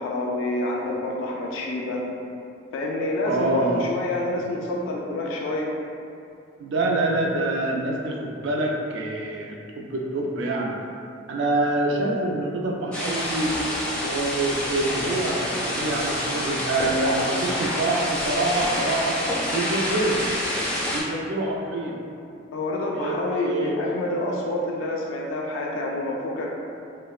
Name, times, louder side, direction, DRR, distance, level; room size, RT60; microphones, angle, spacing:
voice 1, 0.0-2.1 2.7-5.7 22.5-26.5, left 1 dB, 85° left, -2 dB, 0.3 m, -27 dB
voice 2, 3.3-3.9 6.6-10.8 11.3-13.6 14.0-19.2 19.5-20.2 20.9-22.0 22.9-23.8, right 2 dB, 65° right, -1 dB, 0.4 m, -26 dB
sound 1, 12.9-21.0, left 1 dB, 5° left, 0.4 m, -27 dB
2.9 x 2.1 x 2.3 m, 2.5 s
head